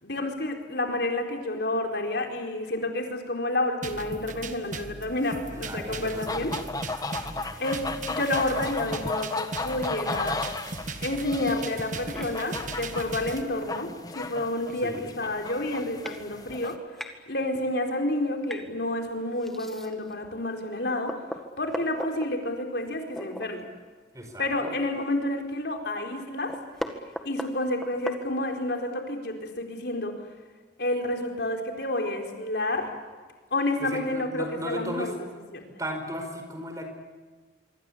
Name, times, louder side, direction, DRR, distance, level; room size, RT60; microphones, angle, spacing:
voice 1, 0.0-6.5 7.6-10.4 11.0-16.8 17.3-21.1 21.6-23.7 24.4-26.5 27.2-30.1 30.8-32.9 33.5-35.1 35.5-35.7, left 1 dB, 65° left, 3 dB, 4.3 m, -29 dB
sound 1, 3.8-13.4, right 3 dB, 45° right, 1.7 m, -38 dB
voice 2, 5.7-6.5 14.8-15.1 24.1-24.7 33.8-35.1 35.8-36.8, equal, 20° right, 5 dB, 4.9 m, -35 dB
sound 2, 6.1-16.8, left 3 dB, 20° left, 1.3 m, -35 dB
sound 3, 12.1-12.3 13.8-13.9 14.4-14.5 14.7-15.0 15.6-15.7 16.0-16.2 16.6-17.1 18.4-18.7 19.4-20.1 20.6-20.7 21.1-22.3 23.1-23.5 23.8-23.9 24.3-25.5 25.8-25.9 26.2-28.7, equal, ahead, 1.9 m, -38 dB
25.5 x 25.0 x 8.7 m, 1.4 s
head